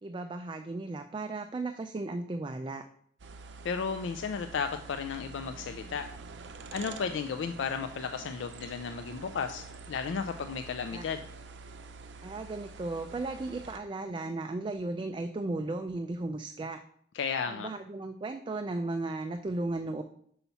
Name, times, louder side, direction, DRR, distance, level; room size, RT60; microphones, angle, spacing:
voice 1, 0.0-2.8 10.9-11.0 12.2-16.8 17.5-20.0, right 2 dB, 25° right, 7 dB, 0.3 m, -35 dB
sound 1, 3.2-13.8, right 4 dB, 75° right, 0.6 m, -47 dB
voice 2, 3.6-6.1 6.7-11.2 17.1-17.7, left 6 dB, 85° left, 8 dB, 0.4 m, -34 dB
5.6 x 5.6 x 4.1 m, 0.64 s
head